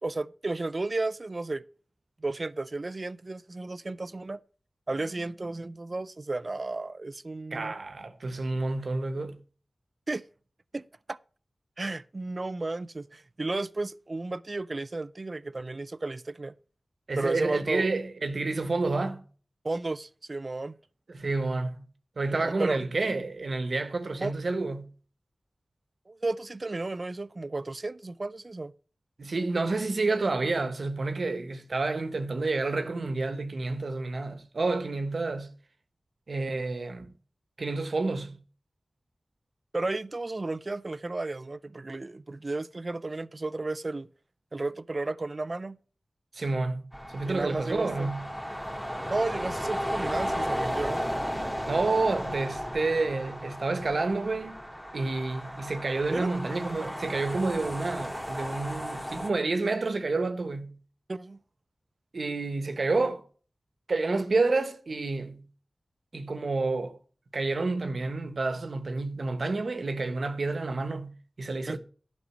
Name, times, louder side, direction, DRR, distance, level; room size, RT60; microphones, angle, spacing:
voice 1, 0.0-1.6 2.2-4.4 4.9-7.7 10.1-10.2 10.7-10.8 11.1-11.2 11.8-16.5 17.2-17.9 19.6-20.8 22.4-22.8 24.2-24.3 26.1-28.7 39.7-44.1 44.5-45.8 47.2-48.1 49.0-51.0 56.1-56.3 61.1-61.4 71.7-71.8, right 2 dB, 45° right, 0.4 m, -33 dB
voice 2, 7.5-9.4 17.1-19.2 21.1-21.8 22.2-24.9 29.2-35.5 36.3-37.1 37.6-38.4 46.3-46.8 47.1-48.3 51.7-54.6 54.9-60.8 62.1-63.2 63.9-65.5 66.1-67.0 67.3-71.8, right 3 dB, 65° right, 1.2 m, -29 dB
sound 1, 46.9-59.3, equal, 5° left, 1.9 m, -34 dB
11.5 x 5.3 x 6.1 m
wide cardioid pair, 75°, 0 cm